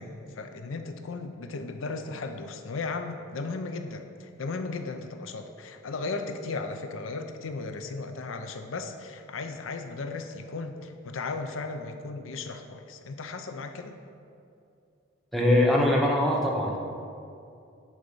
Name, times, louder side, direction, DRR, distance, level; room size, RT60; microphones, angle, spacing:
voice 1, 0.0-14.0, left 3 dB, 85° left, 7 dB, 0.6 m, -36 dB
voice 2, 15.3-16.8, left 1 dB, ahead, -3 dB, 1.0 m, -22 dB
10.0 x 3.9 x 5.5 m, 2.5 s
head